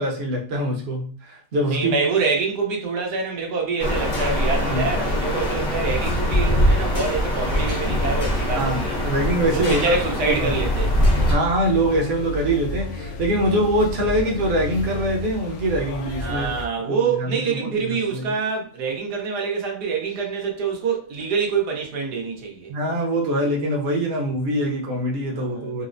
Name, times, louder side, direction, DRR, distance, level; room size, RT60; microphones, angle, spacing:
voice 1, 0.0-2.0 4.6-4.9 8.5-10.6 11.3-16.5 16.9-18.4 22.7-25.9, right 1 dB, 50° right, 0.8 m, -24 dB
voice 2, 1.7-9.0 9.5-10.9 16.2-22.7 25.3-25.9, right 5 dB, 85° right, 1.4 m, -26 dB
sound 1, 3.8-11.3, left 1 dB, 40° left, 0.7 m, -22 dB
Atmosphere Hotel Nepal, 10.5-16.7, left 1 dB, 75° left, 1.1 m, -31 dB
4.2 x 2.0 x 2.5 m
omnidirectional pair, 1.7 m